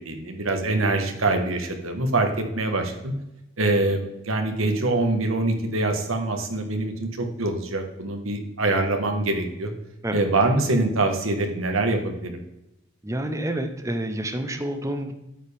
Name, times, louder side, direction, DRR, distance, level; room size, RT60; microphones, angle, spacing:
voice 1, 0.0-3.1 3.6-9.7 10.1-12.4, right 2 dB, 80° right, 5 dB, 1.5 m, -24 dB
voice 2, 13.0-15.2, right 1 dB, 15° right, 6 dB, 0.8 m, -28 dB
9.0 x 7.2 x 3.5 m, 0.90 s
head